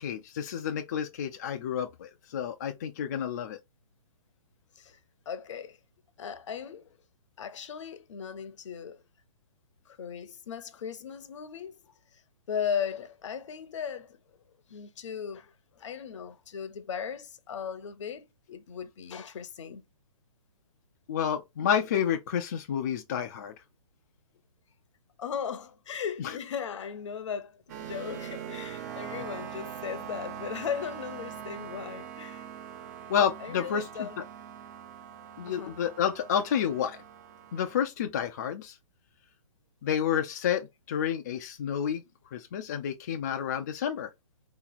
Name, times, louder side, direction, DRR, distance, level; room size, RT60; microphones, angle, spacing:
voice 1, 0.0-3.6 21.1-23.5 26.2-26.4 33.1-34.1 35.4-37.0 37.5-38.8 39.8-42.0 42.3-44.1, left 8 dB, 30° left, 0.3 m, -30 dB
voice 2, 3.1-3.4 4.8-5.0 5.3-5.8 6.2-7.0 7.4-9.0 9.9-12.2 12.5-14.2 14.7-19.8 25.2-32.5 33.4-34.2 35.5-35.8, left 7 dB, 55° left, 0.7 m, -37 dB
sound 1, 27.7-37.8, right 9 dB, 30° right, 0.5 m, -42 dB
3.9 x 2.9 x 4.0 m
hypercardioid pair, 160°, 18 cm